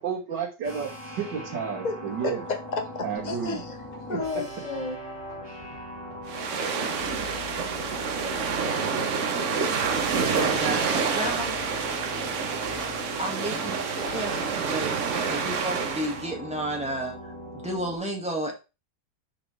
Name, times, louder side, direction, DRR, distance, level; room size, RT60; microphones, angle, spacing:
voice 1, 0.0-2.4 3.0-3.6 4.1-4.4, right 7 dB, 80° right, 1.9 m, -31 dB
sound 1, 0.6-18.0, equal, 15° left, 2.0 m, -40 dB
voice 2, 2.2-3.7 4.1-5.0, left 4 dB, 55° left, 0.5 m, -32 dB
sound 2, 3.2-17.4, left 6 dB, 85° left, 4.1 m, -49 dB
sound 3, 6.3-16.2, right 5 dB, 55° right, 1.0 m, -28 dB
voice 3, 10.3-11.6 13.2-15.0 15.3-18.5, right 1 dB, 5° right, 1.5 m, -32 dB
6.6 x 5.2 x 3.2 m
omnidirectional pair, 1.9 m